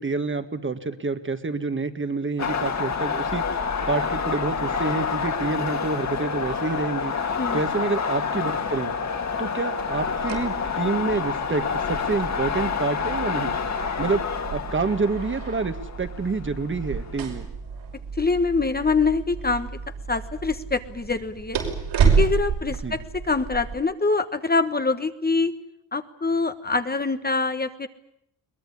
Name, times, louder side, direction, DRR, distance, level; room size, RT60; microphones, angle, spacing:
voice 1, 0.0-3.4 3.9-7.1 7.5-8.9 9.4-13.6 14.0-17.5 22.8-23.0, right 3 dB, 30° right, 9 dB, 1.9 m, -28 dB
sound 1, 2.4-17.2, left 5 dB, 40° left, 2.5 m, -28 dB
sound 2, 9.8-23.7, right 6 dB, 75° right, 6.0 m, -30 dB
voice 2, 18.1-19.7 20.1-21.6 22.2-25.5 25.9-27.9, left 4 dB, 20° left, 9 dB, 1.4 m, -24 dB
22.5 x 20.5 x 9.9 m, 0.75 s
cardioid pair, 105°, 42 cm